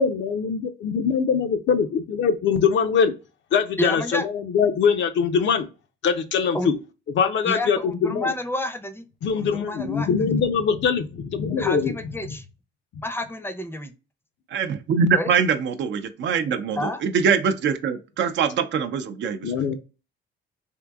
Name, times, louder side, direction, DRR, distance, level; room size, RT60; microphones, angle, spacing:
voice 1, 0.0-3.1 3.5-5.7 6.0-6.8 7.1-8.3 9.2-11.9 19.4-19.7, left 6 dB, 65° left, 0.5 m, -22 dB
voice 2, 3.8-4.3 6.5-6.7 7.4-9.1 9.4-10.3 11.6-12.5 13.0-13.9 15.1-15.3 16.8-17.0, left 1 dB, 10° left, 0.6 m, -30 dB
voice 3, 14.5-19.7, right 6 dB, 65° right, 0.5 m, -23 dB
3.6 x 2.6 x 2.3 m
cardioid pair, 95°, 21 cm